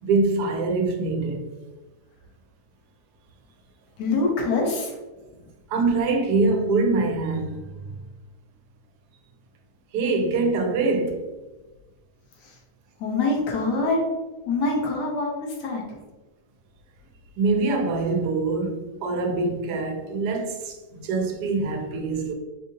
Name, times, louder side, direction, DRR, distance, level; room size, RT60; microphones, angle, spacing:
voice 1, 0.0-1.4 5.7-7.7 9.9-11.2 17.4-22.3, right 3 dB, 85° right, 1.2 m, -24 dB
voice 2, 4.0-5.0 13.0-14.0 14.5-16.0, left 3 dB, 85° left, 1.4 m, -25 dB
4.0 x 2.7 x 2.7 m
omnidirectional pair, 1.7 m